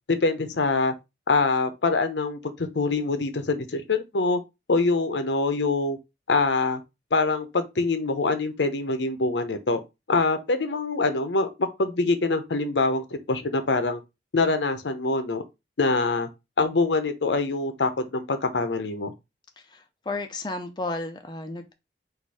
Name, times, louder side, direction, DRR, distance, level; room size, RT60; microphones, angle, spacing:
voice 1, 0.1-0.9 1.3-4.4 4.7-6.0 6.3-6.8 7.1-9.8 10.1-14.0 14.3-15.4 15.8-16.3 16.6-19.1, left 3 dB, 85° left, 0.7 m, -24 dB
voice 2, 19.7-21.7, left 2 dB, 25° left, 0.5 m, -33 dB
4.2 x 2.6 x 4.7 m
head